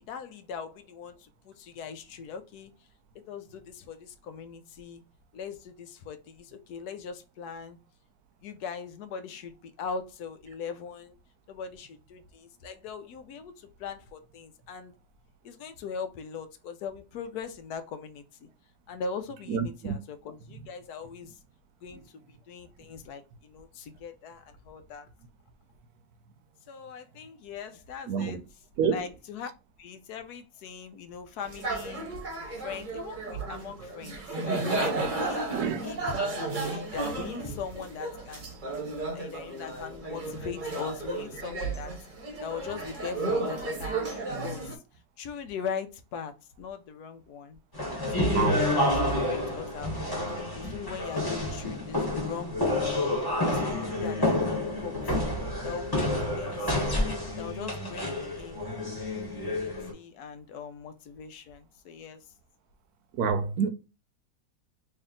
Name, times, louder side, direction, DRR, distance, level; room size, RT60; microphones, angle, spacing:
voice 1, 0.0-2.7 3.3-5.0 5.3-7.8 8.4-11.2 11.5-14.9 15.4-18.5 18.9-21.4 21.8-25.1 26.7-28.4 28.8-29.5 29.8-32.1 32.5-36.0 36.5-38.5 39.1-41.9 42.4-44.8 45.2-47.6 48.1-52.8 53.4-55.3 55.6-58.7 59.4-62.2, left 6 dB, 80° left, 1.2 m, -40 dB
voice 2, 19.5-20.0 28.1-28.4 28.8-29.0 35.5-35.8 48.3-48.6 63.2-63.7, right 6 dB, 75° right, 1.1 m, -27 dB
sound 1, 31.4-44.7, right 3 dB, 35° right, 1.0 m, -33 dB
sound 2, 47.7-59.9, left 1 dB, 15° left, 1.1 m, -29 dB
3.3 x 2.7 x 3.7 m
omnidirectional pair, 1.7 m